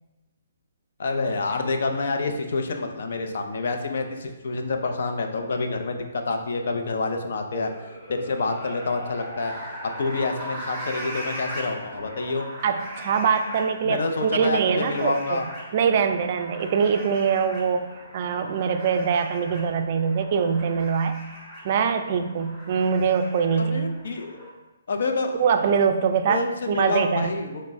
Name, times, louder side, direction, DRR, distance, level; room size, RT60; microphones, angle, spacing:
voice 1, 1.0-7.7 8.1-9.5 9.8-12.5 13.8-15.5 23.6-24.5 24.9-25.4 26.3-27.6, left 3 dB, 65° left, 5 dB, 0.5 m, -27 dB
sound 1, 7.5-24.5, equal, 10° right, 1.5 m, -39 dB
voice 2, 12.6-15.4 15.7-21.2 21.6-23.9 25.3-26.4 26.7-27.3, right 6 dB, 45° right, 7 dB, 0.3 m, -23 dB
5.9 x 2.1 x 3.5 m, 1.1 s
hypercardioid pair, 150°, 0 cm